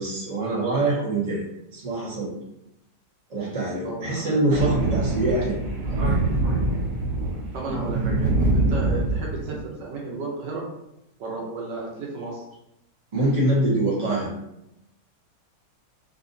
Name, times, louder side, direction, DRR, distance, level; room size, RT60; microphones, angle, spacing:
voice 1, 0.0-1.4 1.7-2.3 3.3-6.0 13.1-14.3, right 2 dB, 25° right, -7 dB, 1.2 m, -24 dB
voice 2, 3.8-4.7 7.5-10.6 11.2-12.4, right 3 dB, 80° right, -2 dB, 1.4 m, -33 dB
Thunder, 4.5-9.6, right 2 dB, 60° right, 1.0 m, -24 dB
3.8 x 2.7 x 2.6 m, 0.84 s
omnidirectional pair, 1.9 m